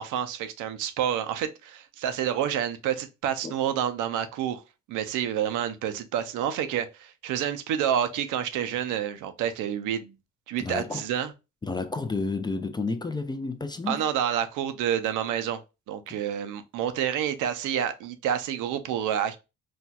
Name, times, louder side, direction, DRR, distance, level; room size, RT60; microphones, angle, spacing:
voice 1, 0.0-4.6 4.9-10.1 10.5-11.3 13.9-15.6 15.9-19.4, right 9 dB, 90° right, 0.5 m, -28 dB
voice 2, 10.6-11.0 11.6-14.1, left 3 dB, 15° left, 0.3 m, -31 dB
4.2 x 2.3 x 2.2 m
cardioid pair, 90°, 30 cm